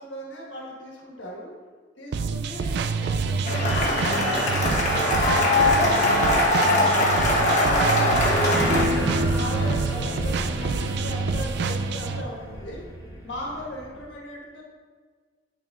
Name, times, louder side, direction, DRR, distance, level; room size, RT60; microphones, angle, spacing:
voice 1, 0.0-1.5 2.0-6.5 7.4-12.8 13.2-14.6, equal, 85° left, -3 dB, 1.4 m, -37 dB
sound 1, 2.1-12.2, right 4 dB, 60° right, 0.3 m, -27 dB
Cheering / Applause, 3.5-8.9, left 1 dB, 40° left, 1.2 m, -21 dB
sound 2, 8.5-14.0, equal, 15° right, 1.0 m, -30 dB
9.0 x 4.5 x 2.4 m, 1.5 s
head